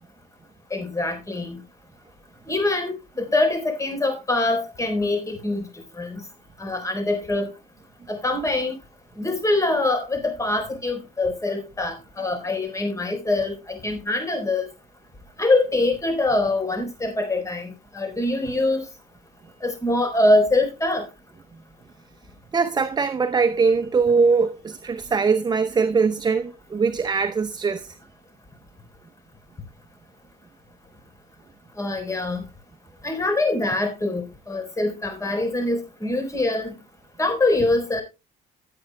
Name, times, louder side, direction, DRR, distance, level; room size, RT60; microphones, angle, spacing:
voice 1, 0.7-1.6 2.5-5.6 6.0-6.2 6.6-7.5 8.1-8.7 9.2-14.7 15.4-18.9 19.6-21.0 31.8-32.4 33.0-36.7 37.2-38.0, left 2 dB, 20° left, 4.3 m, -24 dB
voice 2, 22.5-27.9, right 5 dB, 25° right, 0.8 m, -21 dB
16.5 x 8.7 x 2.2 m
cardioid pair, 110°, 17 cm